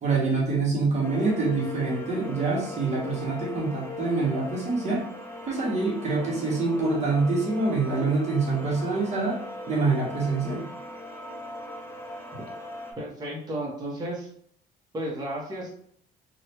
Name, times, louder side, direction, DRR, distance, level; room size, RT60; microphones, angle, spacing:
voice 1, 0.0-5.1 5.5-9.4 9.7-10.7, right 3 dB, 40° right, -3 dB, 1.1 m, -26 dB
sound 1, 1.0-12.9, left 2 dB, 15° left, 0.7 m, -39 dB
voice 2, 13.0-14.3 14.9-15.7, right 1 dB, 25° right, -4 dB, 1.0 m, -33 dB
3.1 x 2.4 x 2.9 m, 0.62 s
cardioid pair, 110°, 17 cm